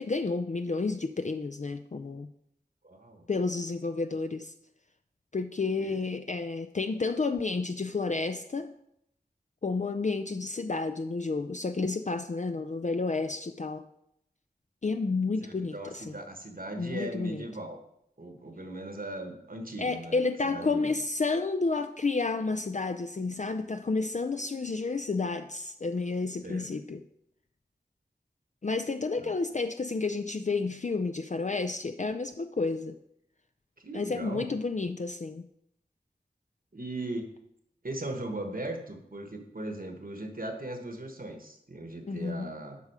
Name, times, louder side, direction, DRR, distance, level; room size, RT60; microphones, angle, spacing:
voice 1, 0.0-2.3 3.3-4.5 5.3-8.7 9.6-13.8 14.8-16.2 16.8-17.4 19.8-27.0 28.6-33.0 33.9-35.5 42.0-42.5, left 3 dB, 45° left, 8 dB, 0.4 m, -31 dB
voice 2, 2.8-3.3 5.8-6.0 15.4-17.8 18.2-20.9 26.4-26.7 29.2-29.3 33.8-34.5 36.7-37.3 37.8-42.8, right 1 dB, 55° right, 4 dB, 1.3 m, -38 dB
8.3 x 5.5 x 4.8 m, 0.77 s
wide cardioid pair, 40°, 18 cm